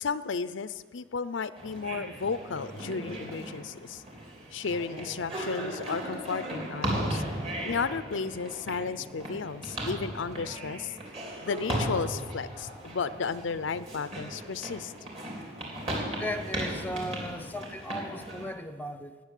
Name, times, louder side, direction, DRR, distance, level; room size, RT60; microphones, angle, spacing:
voice 1, 0.0-4.0 4.5-7.2 7.6-10.9 11.4-14.9, left 5 dB, 85° left, 14 dB, 0.6 m, -33 dB
sound 1, 1.5-18.5, right 1 dB, 35° right, 3.3 m, -36 dB
voice 2, 16.1-19.2, equal, 10° left, 9 dB, 0.7 m, -36 dB
20.0 x 6.7 x 8.3 m, 1.5 s
head